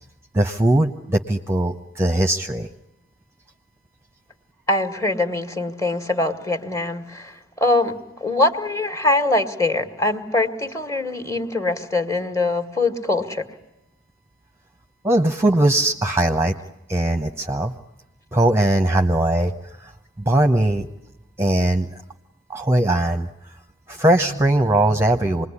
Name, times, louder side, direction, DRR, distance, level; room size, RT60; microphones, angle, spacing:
voice 1, 0.3-2.7 15.0-16.5 16.9-17.7 18.3-19.5 19.8-19.9 20.2-20.9 21.4-21.9 22.5-23.3 23.9-25.5, right 1 dB, 15° right, 6 dB, 1.0 m, -19 dB
voice 2, 4.7-13.4, left 2 dB, 15° left, 8 dB, 1.8 m, -23 dB
27.0 x 21.0 x 9.8 m, 0.91 s
head